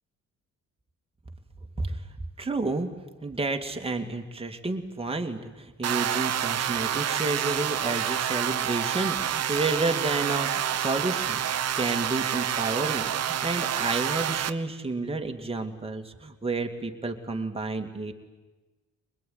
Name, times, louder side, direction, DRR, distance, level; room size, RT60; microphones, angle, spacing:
voice 1, 2.4-2.9 3.2-11.4 11.8-18.1, right 3 dB, 20° right, 4 dB, 2.6 m, -30 dB
sound 1, 5.8-14.5, right 10 dB, 55° right, 1.1 m, -28 dB
23.5 x 20.5 x 9.6 m, 1.2 s
cardioid pair, 90°, 30 cm